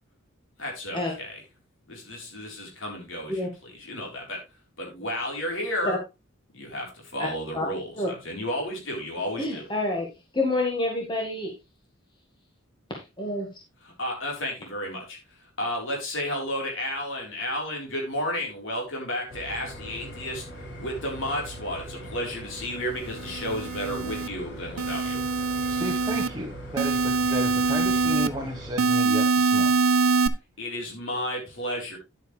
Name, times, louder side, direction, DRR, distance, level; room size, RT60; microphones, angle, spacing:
voice 1, 0.6-1.4 1.9-4.4 4.8-6.0 6.5-9.7 13.8-15.2 15.6-20.4 20.8-25.2 30.6-32.0, left 1 dB, 65° left, 0 dB, 4.0 m, -32 dB
voice 2, 9.4-10.1 10.3-11.5 12.9-13.5, left 2 dB, 20° left, 0 dB, 1.7 m, -27 dB
sound 1, 19.3-28.7, right 1 dB, 50° left, 4.4 m, -41 dB
sound 2, 23.2-24.3 24.8-26.3 26.8-28.3 28.8-30.3, right 3 dB, 85° right, 0.7 m, -24 dB
voice 3, 25.7-29.8, equal, 20° right, 1 dB, 1.2 m, -33 dB
10.5 x 8.0 x 3.3 m, 0.25 s
head